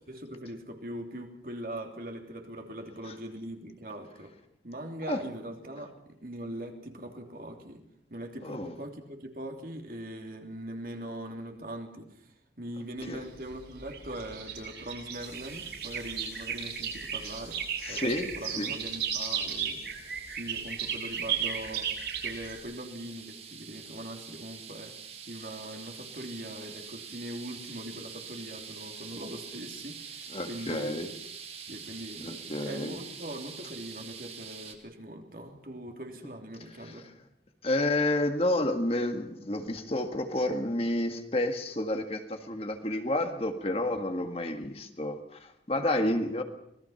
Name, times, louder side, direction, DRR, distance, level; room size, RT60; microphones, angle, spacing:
voice 1, 0.1-4.3 4.6-7.8 8.1-17.6 17.9-19.8 20.3-21.9 22.2-25.0 25.3-31.0 31.7-37.1, right 1 dB, 50° right, 3 dB, 3.1 m, -41 dB
voice 2, 8.4-8.8 13.1-13.2 17.8-18.7 30.3-31.1 32.2-33.0 37.6-46.4, left 1 dB, 35° left, 6 dB, 1.8 m, -30 dB
sound 1, 13.0-22.6, right 7 dB, 65° right, 7.1 m, -35 dB
sound 2, 15.2-34.8, right 6 dB, 35° right, 2.5 m, -46 dB
26.0 x 19.5 x 5.8 m, 0.73 s
head